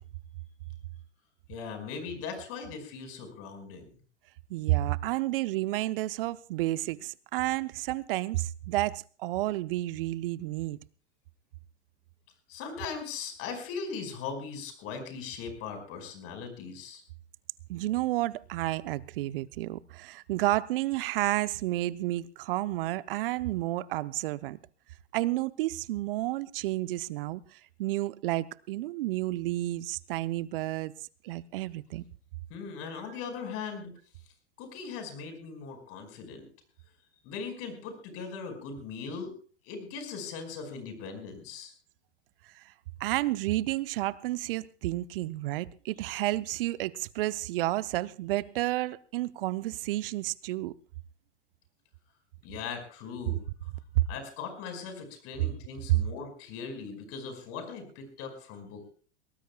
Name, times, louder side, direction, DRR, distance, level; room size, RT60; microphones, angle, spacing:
voice 1, 1.5-3.9 12.5-17.0 32.5-33.9 34.6-36.4 37.2-39.3 39.6-41.7 52.4-53.4 54.1-58.9, left 5 dB, 45° left, 5.2 m, -39 dB
voice 2, 4.5-10.8 17.7-24.6 25.1-30.9 31.2-32.0 43.0-50.7 53.9-54.0, right 17 dB, 55° right, 0.8 m, -31 dB
22.5 x 18.5 x 2.3 m
hypercardioid pair, 100°, 33 cm